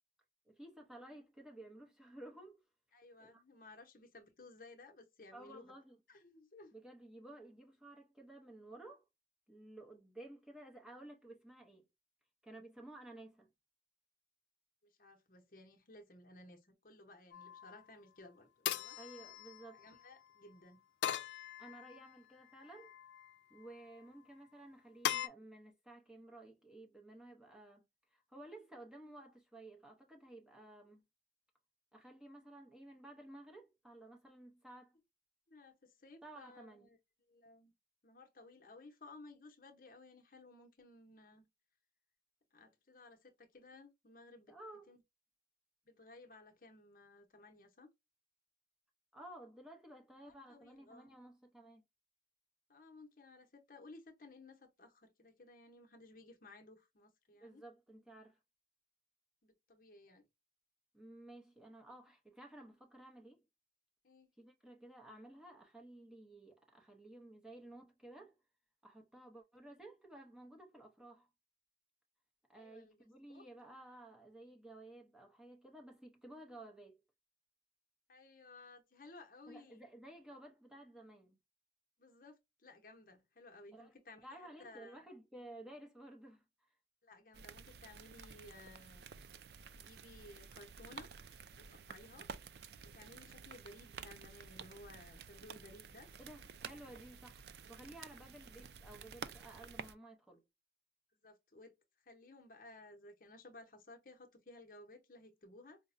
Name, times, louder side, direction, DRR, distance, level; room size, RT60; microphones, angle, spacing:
voice 1, 0.5-2.6 3.2-3.4 5.3-6.0 6.7-9.0 9.5-11.9 12.4-13.5 19.0-19.8 21.6-22.9 23.5-27.8 28.1-31.0 31.9-34.9 36.2-36.9 44.5-44.9 49.1-51.8 57.4-58.4 60.9-63.4 64.4-68.4 68.8-71.3 72.5-77.0 79.5-81.4 83.7-84.0 84.2-86.7 96.2-100.4, right 1 dB, 5° right, 0.7 m, -54 dB
voice 2, 2.9-5.7 6.1-6.7 14.8-19.0 19.7-20.8 35.5-37.0 37.3-37.7 38.0-41.5 42.5-44.6 44.9-45.0 45.8-47.9 50.2-51.1 52.7-57.6 59.4-60.2 64.0-64.3 72.5-73.0 73.3-73.5 78.1-79.8 82.0-85.0 87.0-89.1 89.8-91.1 91.6-92.3 92.8-96.1 101.2-101.8 102.0-105.8, left 2 dB, 50° left, 0.8 m, -58 dB
sound 1, 17.3-17.8 18.7-20.0 21.0-22.1 22.7-23.3 25.0-25.3, left 10 dB, 80° left, 0.4 m, -40 dB
sound 2, 87.3-99.9, right 6 dB, 65° right, 0.4 m, -52 dB
4.9 x 2.1 x 2.5 m
head